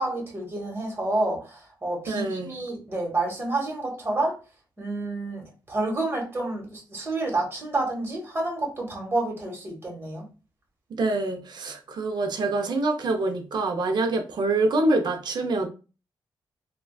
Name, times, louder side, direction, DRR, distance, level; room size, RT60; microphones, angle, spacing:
voice 1, 0.0-4.3 4.8-10.3, right 2 dB, 25° right, 1.1 m, -29 dB
voice 2, 2.1-2.5 11.0-15.7, right 2 dB, 60° right, 0.6 m, -25 dB
3.3 x 2.3 x 2.3 m
wide cardioid pair, 115°, 8 cm